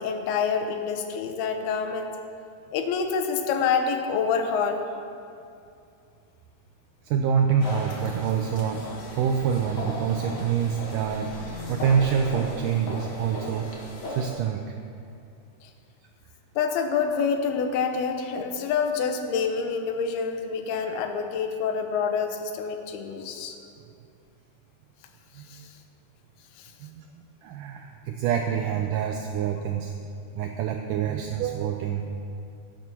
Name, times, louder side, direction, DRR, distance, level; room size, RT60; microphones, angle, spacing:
voice 1, 0.0-2.2 2.7-4.8 15.6-15.7 16.6-23.5 25.5-25.6, left 6 dB, 80° left, 5 dB, 2.9 m, -27 dB
voice 2, 7.0-11.4 11.7-14.6 25.4-25.7 26.8-29.9 30.4-32.1, right 7 dB, 90° right, 4 dB, 1.8 m, -26 dB
sound 1, 7.6-14.3, left 1 dB, 45° left, 1.9 m, -36 dB
17.0 x 7.7 x 6.1 m, 2.5 s
omnidirectional pair, 4.5 m